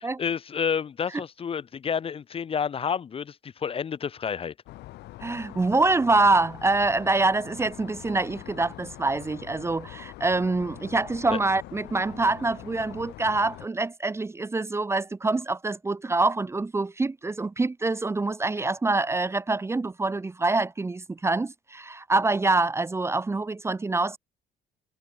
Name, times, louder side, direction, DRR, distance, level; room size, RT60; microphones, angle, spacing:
voice 1, 0.2-4.5 11.3-11.4, left 7 dB, 35° left, 0.8 m, -29 dB
sound 1, 4.7-13.7, left 17 dB, 80° left, 3.3 m, -44 dB
voice 2, 5.2-24.2, right 3 dB, 15° right, 0.7 m, -25 dB
cardioid pair, 110°, 17 cm